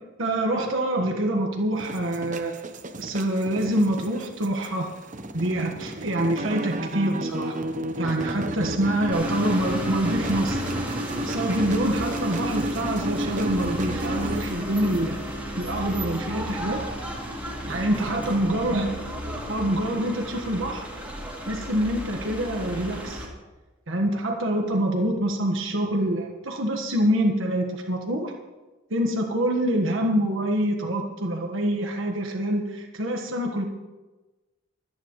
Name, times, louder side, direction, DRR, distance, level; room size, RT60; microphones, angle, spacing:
voice 1, 0.2-2.6 3.0-4.9 5.3-7.6 8.0-10.9 11.2-16.9 17.7-19.0 19.5-20.8 21.5-23.3 23.9-28.3 28.9-33.6, right 1 dB, 80° right, 2 dB, 1.5 m, -26 dB
sound 1, 1.8-14.4, right 1 dB, 40° right, 0.8 m, -32 dB
sound 2, 9.1-23.3, equal, 10° right, 2.7 m, -33 dB
26.0 x 9.7 x 3.1 m, 1.2 s
head